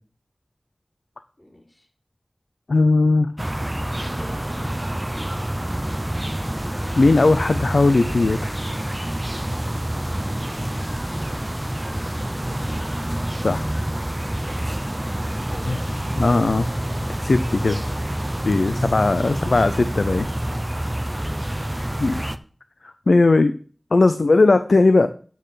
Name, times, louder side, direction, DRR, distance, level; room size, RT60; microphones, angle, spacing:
voice 1, 1.4-1.9 11.8-12.8 15.3-15.8 17.4-18.1 19.2-19.3 21.1-21.5, left 1 dB, 35° left, 0 dB, 4.9 m, -45 dB
voice 2, 2.7-3.3 7.0-8.6 13.4-13.7 15.7-15.8 16.2-16.7 17.2-17.8 18.4-20.3 22.0-22.2 22.8-23.5 23.9-25.1, left 3 dB, 85° left, 11 dB, 0.6 m, -18 dB
sound 1, 3.4-22.4, right 1 dB, 20° right, 0.8 m, -27 dB
8.9 x 6.7 x 5.8 m, 0.42 s
wide cardioid pair, 60°, 0 cm